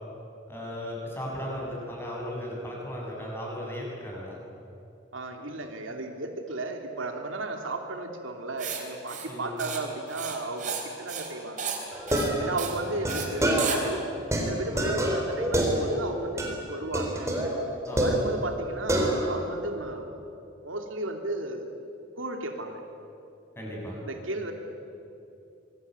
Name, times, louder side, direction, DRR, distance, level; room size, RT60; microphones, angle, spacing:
voice 1, 0.5-4.4 9.3-9.5 12.7-12.9 17.9-18.2 23.6-24.0, equal, 10° left, -3 dB, 7.7 m, -36 dB
voice 2, 5.1-11.8 12.4-14.0 14.4-17.3 18.0-20.1 20.6-21.6 22.2-22.8 24.0-24.5, right 2 dB, 85° right, 4 dB, 2.9 m, -34 dB
Writing, 8.6-8.8 9.1-9.3 9.6-9.8 10.1-10.8 11.1-11.3 11.6-11.8 12.1-12.3 12.6-12.8 13.1-13.3 13.6-13.8, right 7 dB, 40° right, 3.9 m, -33 dB
sound 1, 11.9-13.9 14.3-16.1 16.4-16.6 16.9-18.6 18.9-19.5, right 1 dB, 15° right, 3.9 m, -27 dB
26.0 x 21.5 x 9.7 m, 2.7 s
head